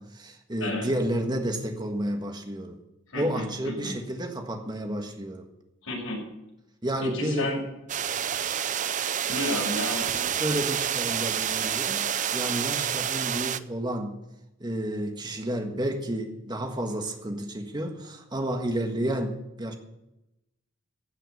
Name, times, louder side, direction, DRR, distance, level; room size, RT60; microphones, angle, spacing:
voice 1, 0.0-2.8 3.1-5.5 6.8-7.5 10.4-14.2 14.6-19.7, right 1 dB, 20° right, 1.5 m, -31 dB
voice 2, 3.1-3.9 5.8-6.2 7.0-7.6 9.3-10.3, left 1 dB, 80° left, 6.2 m, -32 dB
sound 1, 7.9-13.6, right 9 dB, 35° right, 0.5 m, -28 dB
16.0 x 5.8 x 9.4 m
head